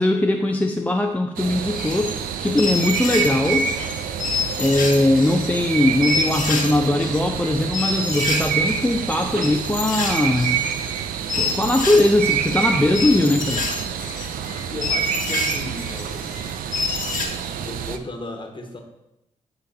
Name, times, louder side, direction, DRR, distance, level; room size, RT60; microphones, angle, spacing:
voice 1, 0.0-3.7 4.6-10.6 11.3-13.7, left 1 dB, 10° left, 3 dB, 0.5 m, -20 dB
sound 1, 1.4-18.0, right 8 dB, 75° right, 0.4 m, -27 dB
sound 2, 1.7-2.2 2.5-3.9 4.2-5.6 6.0-6.7 7.0-17.3, left 4 dB, 65° left, 1.3 m, -28 dB
voice 2, 14.4-16.3 17.6-18.8, left 2 dB, 35° left, 3 dB, 1.3 m, -35 dB
9.4 x 3.9 x 2.7 m, 0.90 s
supercardioid pair, 45°, 15 cm